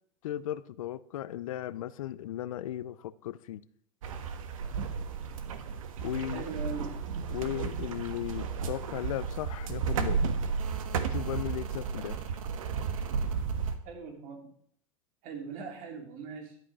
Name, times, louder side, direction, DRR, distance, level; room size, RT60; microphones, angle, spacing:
voice 1, 0.2-3.6 6.0-6.4 7.3-10.2 10.9-12.2, left 12 dB, 90° left, 0.6 m, -36 dB
sound 1, 4.0-13.8, right 6 dB, 90° right, 1.4 m, -33 dB
voice 2, 6.3-7.0 13.8-14.5 15.2-16.6, right 5 dB, 55° right, 3.1 m, -40 dB
12.5 x 8.8 x 6.2 m
supercardioid pair, 120°, 17 cm